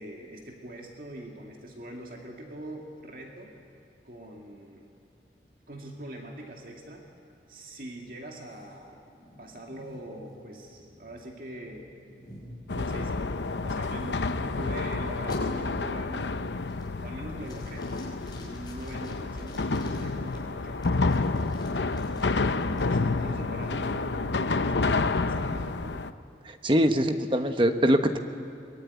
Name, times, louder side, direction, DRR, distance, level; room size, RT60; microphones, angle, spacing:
voice 1, 0.0-3.5 4.0-4.8 5.7-7.0 7.5-9.0 9.4-11.9 12.7-16.6 17.0-17.9 18.2-20.9 21.3-26.1, right 1 dB, 50° right, 0 dB, 2.3 m, -43 dB
sound 1, 8.5-14.8 15.3-15.4 15.9-16.3 16.7-17.1 17.4-20.4 20.8-22.8, left 1 dB, 25° left, 5.4 m, -49 dB
sound 2, 12.7-26.1, left 3 dB, 85° left, 0.8 m, -29 dB
voice 2, 26.5-28.2, equal, 30° right, 7 dB, 1.2 m, -23 dB
23.5 x 21.0 x 9.5 m, 2.5 s
head